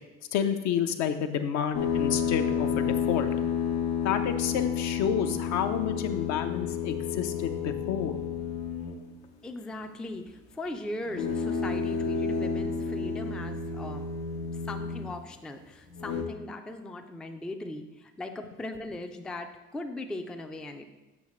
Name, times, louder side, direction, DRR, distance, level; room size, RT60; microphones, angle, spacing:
voice 1, 0.3-3.3 4.0-8.2, left 8 dB, 65° left, 8 dB, 0.7 m, -29 dB
sound 1, 1.7-9.1 11.0-15.2 15.9-16.2, left 6 dB, 85° left, 1.0 m, -30 dB
voice 2, 9.4-14.1 14.6-20.8, left 2 dB, 5° left, 5 dB, 0.3 m, -39 dB
7.2 x 5.6 x 3.1 m, 1.1 s
cardioid pair, 115°, 30 cm